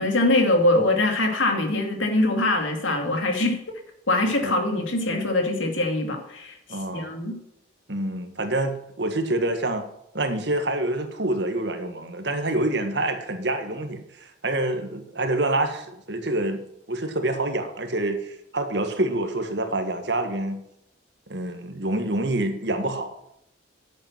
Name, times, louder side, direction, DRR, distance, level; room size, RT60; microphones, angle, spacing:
voice 1, 0.0-3.6 4.1-7.3, left 2 dB, 80° left, 4 dB, 2.5 m, -23 dB
voice 2, 6.7-7.1 7.9-9.9 10.1-16.6 16.9-20.6 21.3-23.2, right 2 dB, 60° right, 6 dB, 1.6 m, -27 dB
10.5 x 8.2 x 6.0 m, 0.79 s
head